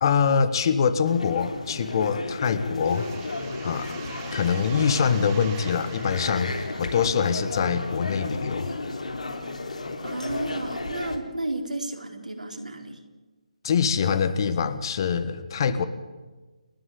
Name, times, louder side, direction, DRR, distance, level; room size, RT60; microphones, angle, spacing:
voice 1, 0.0-3.1 3.6-3.9 4.3-8.7 13.6-15.8, left 6 dB, 35° left, 13 dB, 1.4 m, -24 dB
sound 1, 1.0-11.2, left 3 dB, 65° left, 3.5 m, -33 dB
sound 2, 2.8-8.3, right 7 dB, 20° right, 2.4 m, -45 dB
voice 2, 10.0-13.0, right 2 dB, 80° right, 2 dB, 4.2 m, -32 dB
30.0 x 11.0 x 8.4 m, 1.2 s
figure-of-eight pair, 150°, 4 cm